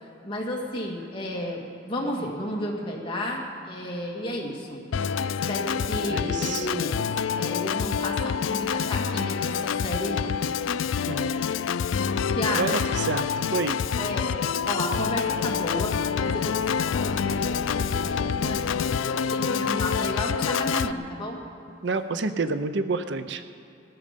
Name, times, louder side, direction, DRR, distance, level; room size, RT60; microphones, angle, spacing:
voice 1, 0.2-4.8 5.5-7.0 7.3-10.3 12.3-12.8 14.0-21.4, left 1 dB, 25° left, -2 dB, 2.1 m, -32 dB
Organ, 4.9-20.9, left 6 dB, 80° left, 0.4 m, -27 dB
voice 2, 6.1-6.7 11.1-11.3 12.5-13.8 21.8-23.4, right 3 dB, 60° right, 10 dB, 0.6 m, -29 dB
18.5 x 13.5 x 5.2 m, 2.6 s
head